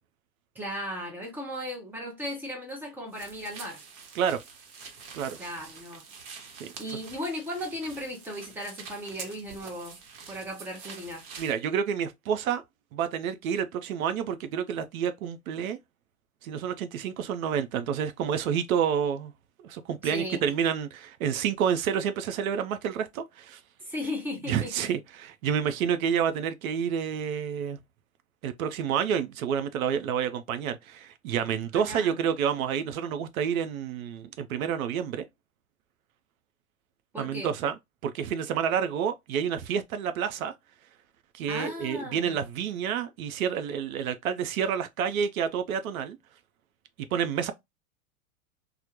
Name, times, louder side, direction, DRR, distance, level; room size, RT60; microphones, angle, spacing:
voice 1, 0.6-3.8 5.4-6.0 6.8-10.0 10.3-11.2 20.0-20.4 23.8-24.9 31.7-32.2 37.1-37.5 41.5-42.4, equal, 5° right, 0.3 m, -36 dB
sound 1, 3.1-11.6, right 5 dB, 45° right, 0.8 m, -46 dB
voice 2, 11.4-12.6 12.9-15.8 16.4-19.3 19.6-23.6 24.5-27.8 28.4-35.2 37.2-37.7 38.0-40.5 41.3-46.2 47.1-47.5, right 8 dB, 75° right, 0.5 m, -29 dB
2.1 x 2.0 x 2.8 m
hypercardioid pair, 110°, 42 cm